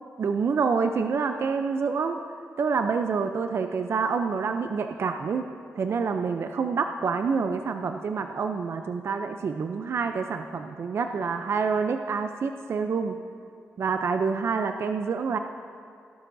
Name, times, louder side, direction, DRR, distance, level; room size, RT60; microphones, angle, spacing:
voice 1, 0.2-2.2 2.6-5.5 5.8-13.2 13.8-15.4, right 5 dB, 55° right, 7 dB, 0.5 m, -27 dB
17.5 x 12.5 x 2.7 m, 2.4 s
cardioid pair, 100°, 5 cm